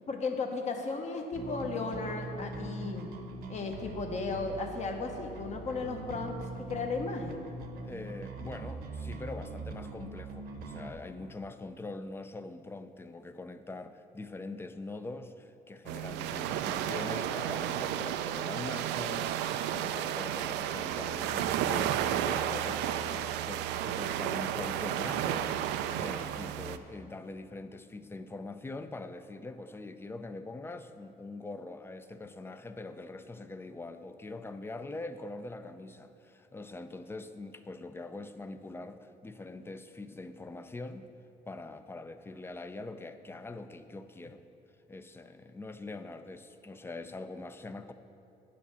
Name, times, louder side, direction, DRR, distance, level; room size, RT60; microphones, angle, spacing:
voice 1, 0.1-3.1 3.5-7.5, left 4 dB, 45° left, 4 dB, 1.1 m, -35 dB
Bass guitar, 1.3-10.9, right 3 dB, 65° right, 0.9 m, -42 dB
voice 2, 7.8-41.0 41.5-44.4 44.9-47.9, left 2 dB, 15° left, 10 dB, 0.4 m, -43 dB
sound 1, 15.9-26.8, right 10 dB, 90° right, 0.4 m, -32 dB
9.4 x 5.0 x 6.8 m, 2.8 s
cardioid pair, 110°, 17 cm